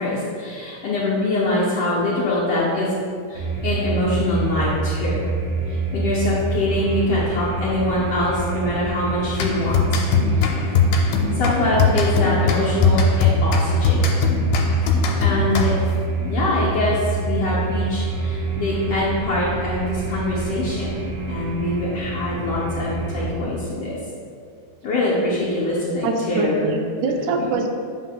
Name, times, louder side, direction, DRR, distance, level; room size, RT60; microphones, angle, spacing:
voice 1, 0.0-2.9 3.3-5.3 5.7-10.0 10.3-10.4 11.3-14.0 15.2-15.9 16.2-20.9 21.3-24.0 24.8-26.7 27.1-27.5, left 2 dB, 70° left, -9 dB, 1.4 m, -24 dB
sound 1, 3.3-23.3, right 3 dB, 60° right, 1.9 m, -27 dB
sound 2, 9.3-16.0, left 4 dB, 90° left, 2.1 m, -20 dB
voice 2, 26.0-27.7, right 4 dB, 80° right, 4 dB, 2.0 m, -24 dB
8.1 x 5.6 x 2.2 m, 2.3 s
omnidirectional pair, 3.6 m